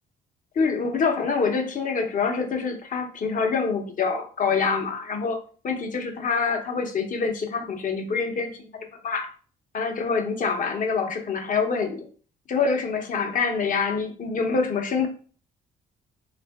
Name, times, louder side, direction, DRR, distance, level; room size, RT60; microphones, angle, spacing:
voice 1, 0.5-5.4 5.6-8.5 9.0-9.3 9.7-12.0 12.5-15.1, left 5 dB, 45° left, 4 dB, 0.8 m, -25 dB
3.5 x 2.5 x 3.4 m, 0.41 s
cardioid pair, 90°, 19 cm